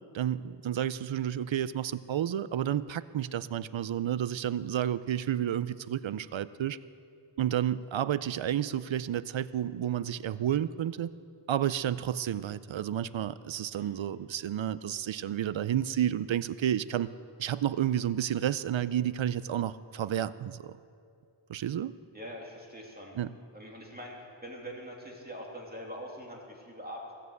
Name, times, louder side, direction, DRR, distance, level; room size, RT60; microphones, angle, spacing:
voice 1, 0.1-6.8 7.4-11.1 11.5-17.1 17.4-20.8 21.5-21.9 23.2-23.3, right 10 dB, 70° right, 16 dB, 0.5 m, -31 dB
voice 2, 22.1-23.2 23.5-27.1, equal, 20° right, -2 dB, 2.8 m, -43 dB
16.5 x 7.4 x 8.0 m, 2.4 s
wide cardioid pair, 60°, 48 cm